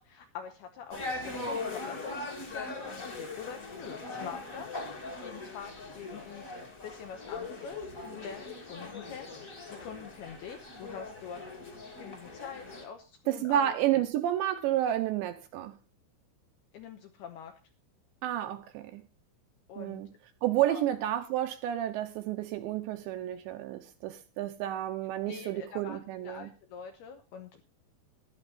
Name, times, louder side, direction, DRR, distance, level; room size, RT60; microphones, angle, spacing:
voice 1, 0.0-11.7 12.0-14.0 16.7-17.5 19.7-20.0 20.6-20.8 25.3-27.6, left 7 dB, 75° left, 2.4 m, -45 dB
sound 1, 0.9-12.8, left 3 dB, 35° left, 1.3 m, -40 dB
voice 2, 13.3-15.8 18.2-19.0 19.8-20.1 20.4-26.5, right 12 dB, 75° right, 2.8 m, -30 dB
14.0 x 11.0 x 4.2 m
omnidirectional pair, 5.7 m